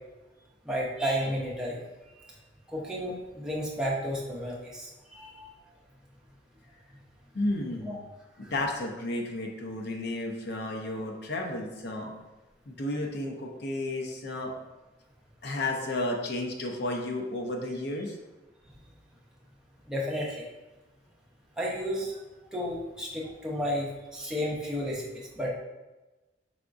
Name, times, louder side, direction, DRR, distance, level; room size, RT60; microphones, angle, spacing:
voice 1, 0.6-1.8 2.2-2.3 2.7-5.5 7.9-8.0 8.4-8.5 19.9-20.4 21.6-22.2 22.5-25.1 25.4-25.5, equal, 5° right, -5 dB, 0.8 m, -32 dB
voice 2, 7.3-8.0 8.4-12.1 12.7-14.5 15.4-18.2, left 1 dB, 65° left, 2 dB, 0.6 m, -32 dB
4.9 x 3.6 x 2.5 m, 1.1 s
head